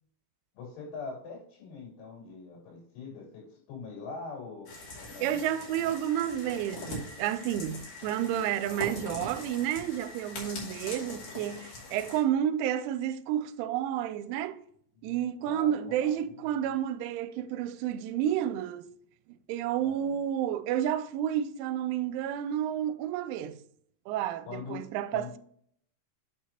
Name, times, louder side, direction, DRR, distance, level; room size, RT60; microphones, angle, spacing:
voice 1, 0.6-4.7 5.0-5.4 10.9-11.0 15.0-15.1 15.5-15.7 16.0-16.3 19.8-20.1 24.5-24.9 25.1-25.3, left 4 dB, 80° left, 5.5 m, -42 dB
sound 1, 4.7-12.2, left 2 dB, 45° left, 3.2 m, -42 dB
voice 2, 5.2-14.6 15.0-18.9 19.3-23.6 24.1-25.4, right 10 dB, 85° right, 3.0 m, -31 dB
9.1 x 6.4 x 2.9 m
omnidirectional pair, 5.5 m